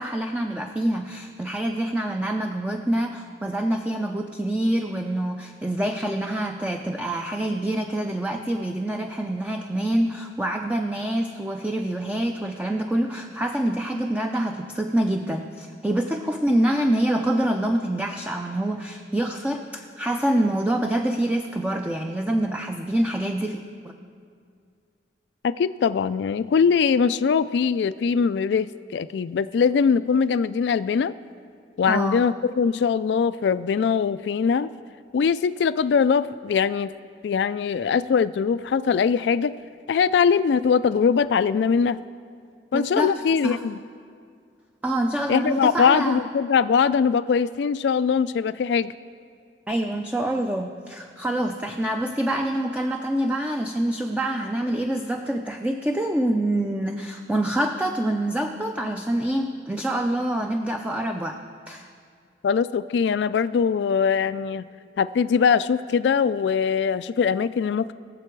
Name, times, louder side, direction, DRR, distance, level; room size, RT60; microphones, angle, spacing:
voice 1, 0.0-23.6 31.9-32.3 42.7-43.1 43.4-43.6 44.8-46.2 49.7-61.4 61.7-61.9, right 1 dB, 10° right, 4 dB, 0.5 m, -26 dB
voice 2, 25.4-31.1 31.8-34.7 35.1-36.9 37.2-39.5 39.9-42.0 42.7-43.8 45.3-48.9 62.4-64.6 65.0-67.9, left 6 dB, 75° left, 14 dB, 0.3 m, -22 dB
22.5 x 7.6 x 4.6 m, 2.3 s
head